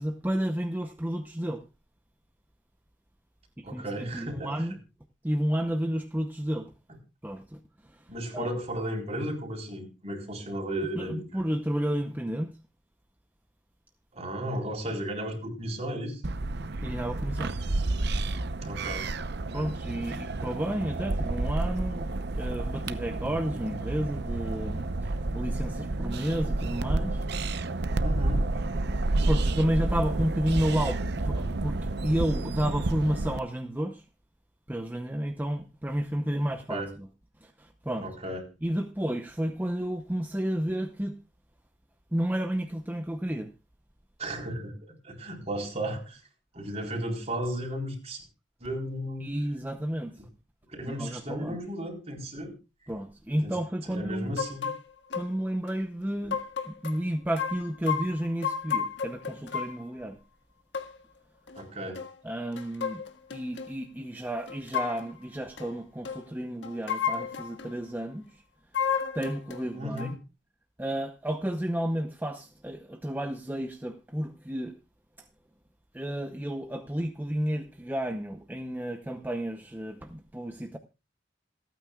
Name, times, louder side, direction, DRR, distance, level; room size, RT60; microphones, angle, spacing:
voice 1, 0.0-1.6 3.6-4.8 5.2-6.7 7.2-8.5 10.9-12.6 16.8-17.5 19.5-27.2 28.9-34.0 34.7-37.1 37.4-38.1 38.6-41.2 42.1-43.5 49.2-50.2 50.9-51.6 52.9-54.4 55.1-60.2 62.2-63.0 63.3-68.4 69.1-70.1 70.8-74.8 75.9-80.8, equal, 10° right, 0.7 m, -31 dB
voice 2, 3.6-4.5 8.1-11.2 14.1-16.2 18.6-19.1 19.5-19.7 28.0-28.5 36.7-36.9 38.0-38.4 44.2-44.7 45.0-46.2 46.5-48.2 48.6-49.3 50.7-52.5 53.4-53.6 53.9-54.7 61.6-62.0 69.7-70.1, right 1 dB, 35° right, 4.0 m, -34 dB
sound 1, 16.2-33.4, right 2 dB, 60° right, 0.8 m, -30 dB
sound 2, 54.4-54.8 55.1-55.3 55.7-55.8 56.3-57.0 57.4-59.8 60.7-60.9 61.5-61.6 61.9-62.1 62.5-63.7 64.5-65.1 65.6-65.7 66.0-66.2 66.6-67.7 68.7-69.7 70.0-70.1, left 7 dB, 70° left, 1.6 m, -32 dB
27.5 x 9.2 x 2.4 m
head